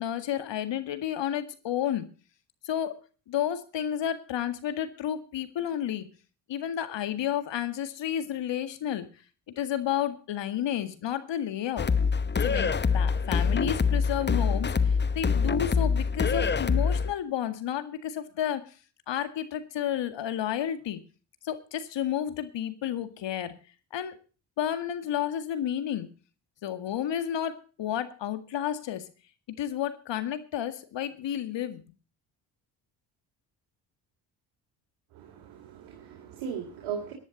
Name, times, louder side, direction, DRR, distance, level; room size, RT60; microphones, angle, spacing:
voice 1, 0.0-2.1 2.6-2.9 3.3-6.1 6.5-9.1 9.6-11.9 12.4-18.6 19.1-21.0 21.4-23.5 23.9-24.2 24.6-26.1 26.6-29.1 29.6-31.8, left 10 dB, 60° left, 10 dB, 2.0 m, -31 dB
sound 1, 11.8-17.1, left 5 dB, 20° left, 0.8 m, -25 dB
voice 2, 35.1-37.1, right 7 dB, 70° right, 1 dB, 3.1 m, -38 dB
18.5 x 10.5 x 4.0 m, 0.37 s
hypercardioid pair, 55°, 50 cm